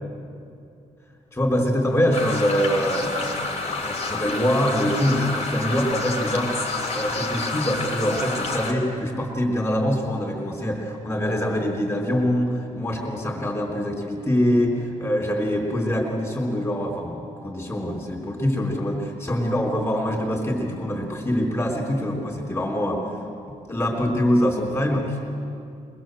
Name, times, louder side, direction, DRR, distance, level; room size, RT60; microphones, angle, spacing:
voice 1, 1.3-3.4 3.8-6.5 6.9-23.1 23.7-25.3, equal, 20° left, -1 dB, 3.9 m, -24 dB
sound 1, 2.1-8.7, left 3 dB, 55° left, 3.4 m, -29 dB
23.0 x 21.0 x 7.8 m, 2.5 s
cardioid pair, 140°, 14 cm